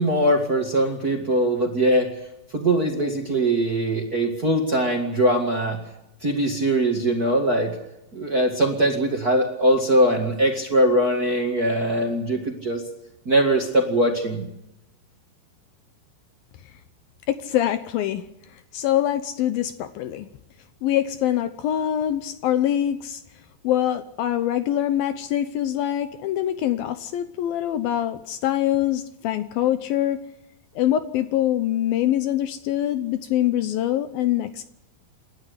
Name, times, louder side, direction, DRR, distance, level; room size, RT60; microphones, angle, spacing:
voice 1, 0.0-2.1 2.5-5.8 6.2-7.7 8.1-12.8 13.2-14.5, right 1 dB, 35° right, 2 dB, 1.7 m, -21 dB
voice 2, 17.3-18.3 18.7-20.3 20.8-23.2 23.6-30.2 30.8-34.6, left 12 dB, 75° left, 11 dB, 2.4 m, -24 dB
28.5 x 12.5 x 8.3 m, 0.91 s
omnidirectional pair, 4.8 m